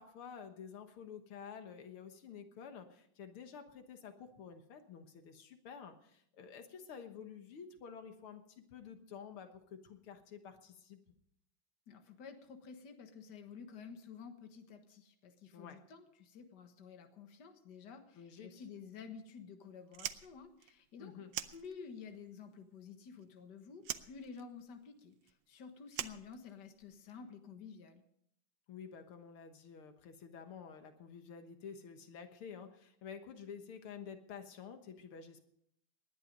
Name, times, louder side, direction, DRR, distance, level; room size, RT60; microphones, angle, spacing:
voice 1, 0.0-11.0 15.5-15.8 18.2-18.6 21.0-21.3 28.7-35.4, left 7 dB, 85° left, 7 dB, 2.2 m, -50 dB
voice 2, 11.9-21.3 21.5-28.0, left 6 dB, 55° left, 6 dB, 2.0 m, -51 dB
Fire, 19.9-22.2 22.4-23.4 23.8-27.0, right 11 dB, 70° right, 1.4 m, -44 dB
19.5 x 11.0 x 5.3 m, 0.70 s
omnidirectional pair, 2.3 m